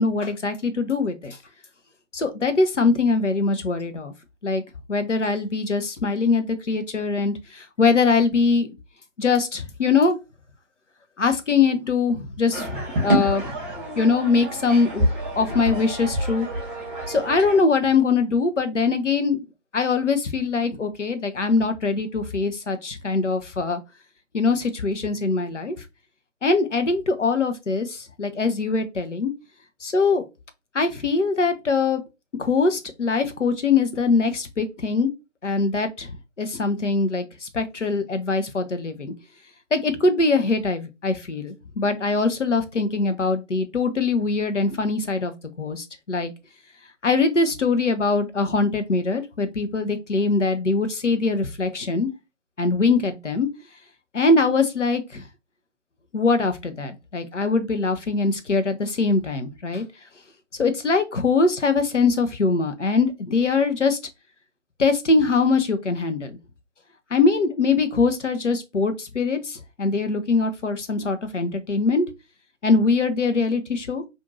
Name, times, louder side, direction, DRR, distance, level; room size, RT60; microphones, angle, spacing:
voice 1, 0.0-1.4 2.1-4.1 4.4-4.6 4.9-8.7 9.2-10.2 11.2-13.6 14.0-15.1 15.4-16.5 17.1-19.4 19.7-23.8 24.3-25.8 26.4-29.3 29.8-30.3 30.7-32.0 32.4-35.1 35.4-39.1 39.7-46.3 47.0-52.1 52.6-53.5 54.1-55.3 56.1-59.8 60.6-64.0 64.8-66.4 67.1-72.1 72.6-74.0, left 4 dB, 70° left, 0.8 m, -22 dB
sound 1, 12.5-17.6, right 1 dB, 10° right, 1.1 m, -27 dB
4.3 x 2.6 x 2.5 m
figure-of-eight pair, 150°, 38 cm